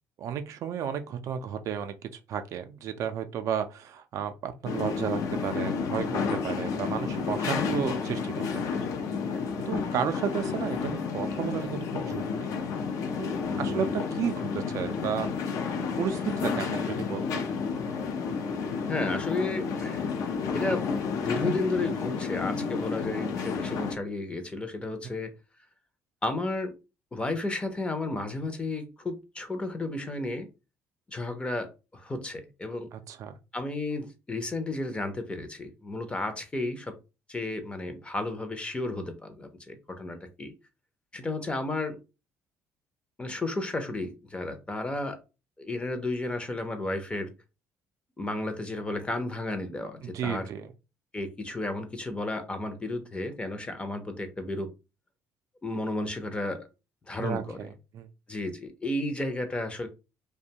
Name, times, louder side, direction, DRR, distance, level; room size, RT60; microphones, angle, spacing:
voice 1, 0.2-8.6 9.7-12.5 13.2-15.6 16.0-17.4 32.9-33.3 50.0-50.7 57.2-57.7 57.9-58.1, right 8 dB, 60° right, 0.4 m, -33 dB
sound 1, 4.6-24.0, left 5 dB, 65° left, 0.5 m, -31 dB
voice 2, 13.5-13.9 18.9-20.0 20.5-20.9 21.2-25.3 26.2-26.8 27.1-30.5 31.1-32.9 33.5-36.9 37.3-40.5 41.1-42.0 43.2-45.2 45.6-47.3 48.2-50.5 51.1-54.7 55.6-56.7 57.1-57.6 58.3-59.9, left 2 dB, 20° left, 0.6 m, -33 dB
2.5 x 2.2 x 2.8 m
cardioid pair, 105°, 6 cm